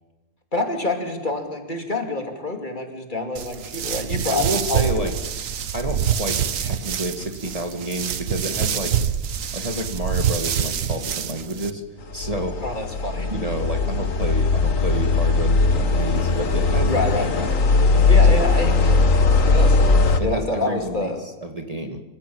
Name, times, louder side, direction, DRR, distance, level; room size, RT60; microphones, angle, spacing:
voice 1, 0.5-4.9 12.6-13.3 16.8-17.6 18.0-19.0 19.5-19.8 20.2-21.2, left 2 dB, 35° left, 4 dB, 2.9 m, -27 dB
sound 1, 3.4-11.7, right 8 dB, 70° right, 1.3 m, -26 dB
voice 2, 4.3-5.1 5.7-9.0 9.5-12.6 13.3-17.4 18.4-18.5 20.2-22.0, right 1 dB, 25° right, 4 dB, 2.2 m, -29 dB
sound 2, 12.1-20.2, left 3 dB, 65° left, 1.9 m, -19 dB
26.0 x 15.5 x 8.8 m, 1.1 s
omnidirectional pair, 1.5 m